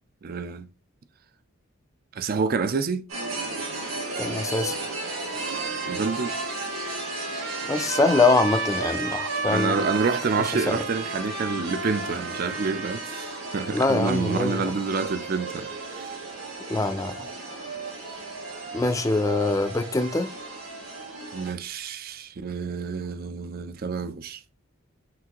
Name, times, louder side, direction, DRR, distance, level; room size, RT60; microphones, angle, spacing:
voice 1, 0.2-0.7 2.1-3.1 5.9-6.4 9.5-16.2 21.3-24.4, right 4 dB, 45° right, 0.4 m, -28 dB
sound 1, 3.1-21.5, right 3 dB, 90° right, 2.2 m, -35 dB
voice 2, 4.2-4.8 7.7-9.8 10.7-10.8 13.7-14.7 16.7-17.3 18.7-20.3, left 3 dB, 15° left, 0.4 m, -23 dB
Trumpet, 5.5-13.4, right 3 dB, 75° right, 0.9 m, -34 dB
5.9 x 2.6 x 2.9 m
head